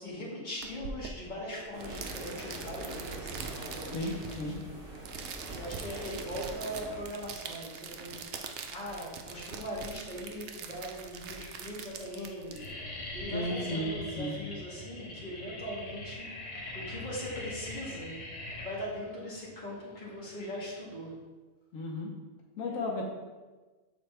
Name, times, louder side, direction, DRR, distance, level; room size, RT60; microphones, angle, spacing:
voice 1, 0.0-4.7 5.5-8.3 8.7-12.6 13.1-18.2 18.6-21.2 22.7-22.9, equal, 35° left, -6 dB, 1.9 m, -40 dB
sound 1, 0.6-13.2, right 5 dB, 65° right, 0.8 m, -43 dB
sound 2, 1.7-7.0, right 1 dB, 45° right, 1.4 m, -44 dB
voice 2, 3.9-4.6 13.3-14.3 21.7-22.1 22.6-23.0, left 1 dB, 90° left, 0 dB, 1.2 m, -34 dB
sound 3, 9.9-10.5 11.2-11.3 11.5-11.9 12.2-21.1, left 2 dB, 65° left, 1.4 m, -42 dB
7.0 x 4.2 x 3.3 m, 1.3 s
omnidirectional pair, 1.4 m